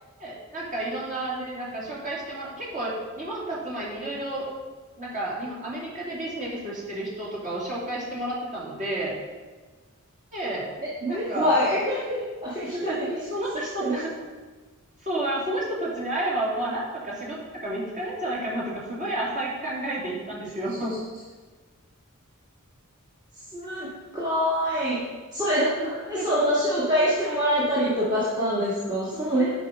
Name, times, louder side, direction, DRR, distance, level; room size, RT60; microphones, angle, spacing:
voice 1, 0.2-4.5 5.0-9.1 10.3-10.7 11.1-11.5 12.7-13.0 13.3-14.1 15.0-21.0 26.1-26.6, right 1 dB, 35° right, -5 dB, 2.9 m, -31 dB
voice 2, 11.0-13.2 13.8-13.9 23.5-25.0 25.3-29.5, equal, 20° right, -8 dB, 1.7 m, -25 dB
10.5 x 5.4 x 5.2 m, 1.3 s
head